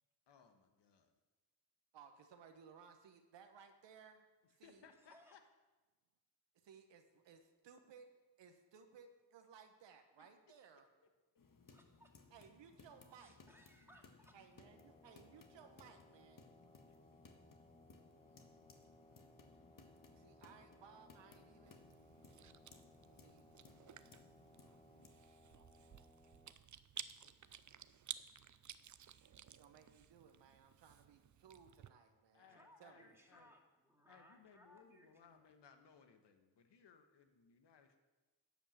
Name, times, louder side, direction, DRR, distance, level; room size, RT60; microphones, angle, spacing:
voice 1, 0.3-1.1 4.6-5.4 16.9-17.0 32.3-33.5 34.1-38.0, left 6 dB, 70° left, 7 dB, 1.4 m, -65 dB
voice 2, 1.9-4.3 4.6-4.8 6.6-8.1 8.4-10.9 12.3-13.3 14.3-16.4 20.1-21.8 23.2-23.5 29.5-33.2, right 6 dB, 75° right, 6 dB, 1.1 m, -61 dB
voice 3, 5.0-5.4 11.6-12.1 13.1-14.4 32.4-35.4, equal, 5° right, 1 dB, 2.5 m, -66 dB
sound 1, 11.4-25.1, left 4 dB, 50° left, 1.5 m, -64 dB
sound 2, 14.6-26.5, equal, 15° left, 1.1 m, -66 dB
Chewing mastication, 21.7-31.9, right 9 dB, 45° right, 0.6 m, -55 dB
11.0 x 5.2 x 7.4 m, 1.2 s
supercardioid pair, 45°, 43 cm